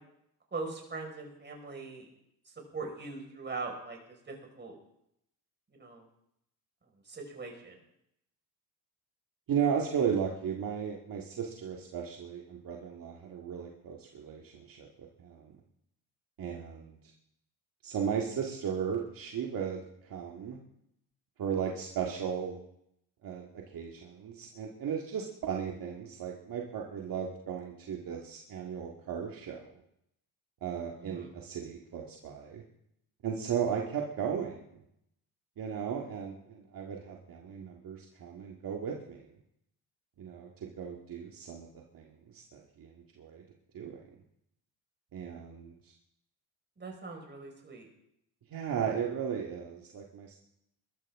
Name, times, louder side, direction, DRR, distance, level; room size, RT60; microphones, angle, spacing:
voice 1, 0.5-2.1 2.7-4.0 4.3-4.7 5.8-6.0 7.1-7.8 31.0-31.3 46.8-47.9, right 3 dB, 25° right, 1 dB, 5.2 m, -41 dB
voice 2, 9.5-14.9 15.2-15.5 16.4-17.0 17.8-19.8 20.1-20.6 21.4-22.6 23.2-29.7 30.6-32.6 33.2-34.6 35.6-39.3 40.2-40.5 40.8-41.7 41.9-43.4 43.7-44.0 45.1-45.9 48.5-50.4, right 7 dB, 55° right, 0 dB, 2.0 m, -35 dB
21.5 x 13.0 x 3.7 m, 0.76 s
cardioid pair, 100°, 41 cm